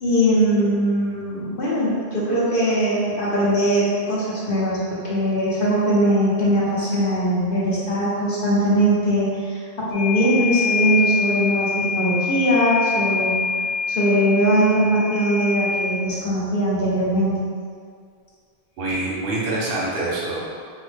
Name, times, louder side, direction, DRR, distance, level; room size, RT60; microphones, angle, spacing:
voice 1, 0.0-13.4 13.9-17.4, equal, 60° left, -7 dB, 0.9 m, -21 dB
sound 1, 9.9-16.0 18.8-19.0, left 4 dB, 35° left, 0.4 m, -25 dB
voice 2, 18.8-20.5, right 2 dB, 65° right, -5 dB, 0.9 m, -26 dB
3.8 x 2.1 x 3.1 m, 2.1 s
omnidirectional pair, 1.1 m